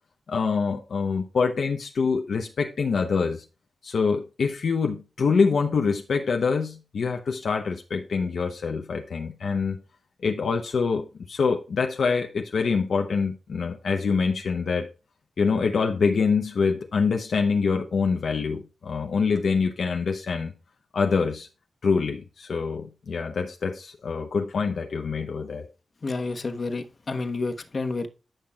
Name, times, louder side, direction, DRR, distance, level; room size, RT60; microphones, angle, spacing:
voice 1, 0.3-3.4 3.8-9.8 10.2-14.9 15.4-20.5 20.9-21.5 21.8-25.7, left 5 dB, 75° left, 0.8 m, -25 dB
voice 2, 26.0-28.1, left 3 dB, 45° left, 1.2 m, -30 dB
15.5 x 5.8 x 2.3 m
wide cardioid pair, 90°, 0 cm